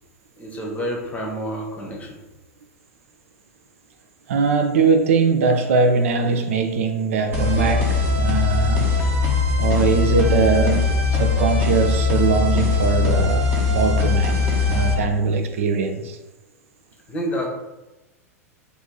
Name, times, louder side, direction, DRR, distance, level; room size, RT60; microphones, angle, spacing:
voice 1, 0.4-2.1 17.1-17.5, equal, 15° left, -1 dB, 0.8 m, -28 dB
voice 2, 4.3-8.9 9.6-16.2, right 4 dB, 60° right, 6 dB, 0.4 m, -21 dB
sound 1, 7.3-14.9, left 4 dB, 25° right, 0.9 m, -20 dB
2.8 x 2.6 x 3.6 m, 1.0 s
figure-of-eight pair, 95°, 8 cm